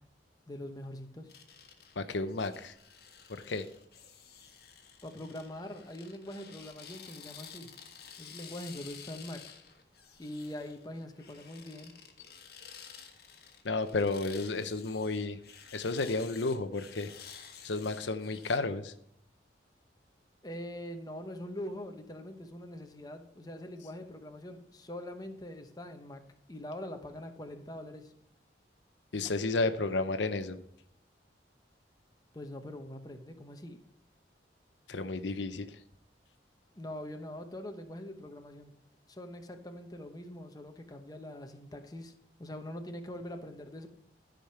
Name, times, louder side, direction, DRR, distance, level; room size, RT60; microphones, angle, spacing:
voice 1, 0.5-1.3 5.0-7.7 8.2-9.4 10.2-11.9 20.4-26.2 26.5-28.1 32.3-33.8 36.8-38.7 39.1-42.1 42.4-43.9, left 1 dB, 20° left, 5 dB, 1.0 m, -43 dB
sound 1, 1.3-18.6, left 7 dB, 60° left, 1.4 m, -52 dB
voice 2, 2.0-2.7 3.3-3.7 13.6-15.4 15.7-17.1 17.6-18.9 29.1-30.6 34.9-35.8, left 3 dB, 85° left, 10 dB, 0.8 m, -32 dB
13.5 x 5.2 x 5.7 m, 0.72 s
head